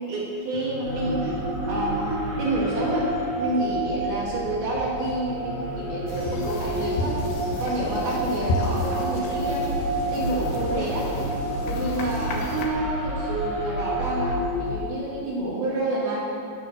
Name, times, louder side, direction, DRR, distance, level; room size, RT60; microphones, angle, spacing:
voice 1, 0.0-1.4 1.7-3.1 3.4-7.2 7.6-11.1 11.7-16.3, right 2 dB, 60° right, -5 dB, 4.0 m, -29 dB
sound 1, 0.5-5.6, left 3 dB, 45° left, 4.5 m, -40 dB
sound 2, 0.9-14.8, right 1 dB, 85° right, 6.4 m, -29 dB
sound 3, 6.1-12.7, left 1 dB, 80° left, 3.8 m, -32 dB
22.0 x 8.1 x 6.3 m, 2.5 s
omnidirectional pair, 5.2 m